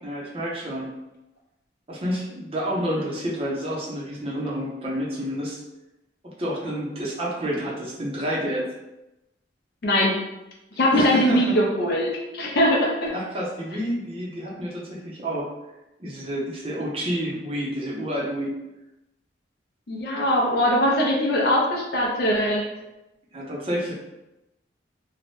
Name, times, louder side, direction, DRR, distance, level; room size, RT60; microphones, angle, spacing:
voice 1, 0.0-0.9 1.9-5.6 6.2-8.7 10.9-11.5 13.1-15.5 16.0-18.6 23.3-23.9, equal, 30° right, -4 dB, 0.6 m, -29 dB
voice 2, 9.8-10.1 10.8-13.1 19.9-22.6, equal, 55° left, -2 dB, 0.5 m, -21 dB
2.7 x 2.1 x 3.2 m, 0.95 s
head